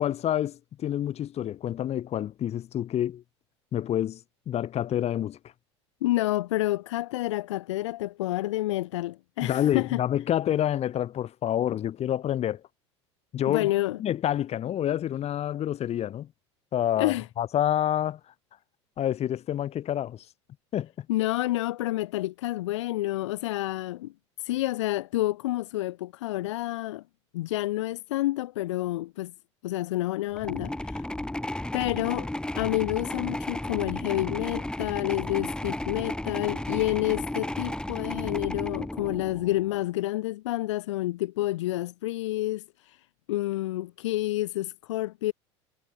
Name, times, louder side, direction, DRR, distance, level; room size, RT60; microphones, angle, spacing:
voice 1, 0.0-3.2 3.7-4.2 4.5-5.4 9.4-12.6 13.3-13.7 14.0-16.3 16.7-18.2 19.0-20.2 20.7-21.1, left 11 dB, 45° left, 7.9 m, -28 dB
voice 2, 6.0-10.0 13.5-14.0 17.0-17.3 21.1-24.1 24.4-27.0 27.3-29.3 29.6-31.1 31.7-32.3 32.6-43.0 43.3-45.3, left 16 dB, 75° left, 1.8 m, -29 dB
sound 1, 30.3-39.7, left 1 dB, 5° left, 2.9 m, -33 dB
hypercardioid pair, 80°, 15 cm